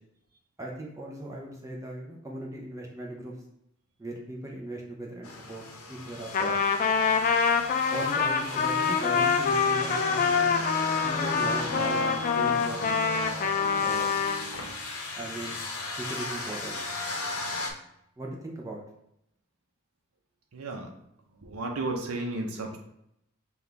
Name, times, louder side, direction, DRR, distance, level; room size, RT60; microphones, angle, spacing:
voice 1, 0.6-3.3 4.0-6.8 7.9-10.7 11.0-12.8 13.8-14.1 15.2-15.6 16.0-16.8 18.2-18.8, right 1 dB, 15° right, -1 dB, 0.5 m, -38 dB
sound 1, 5.2-17.7, left 2 dB, 85° left, 0.7 m, -35 dB
Trumpet, 6.3-14.4, left 6 dB, 40° left, 0.3 m, -25 dB
voice 2, 20.5-20.9 21.4-22.8, right 2 dB, 85° right, 1 dB, 0.6 m, -33 dB
5.6 x 2.3 x 3.3 m, 0.78 s
head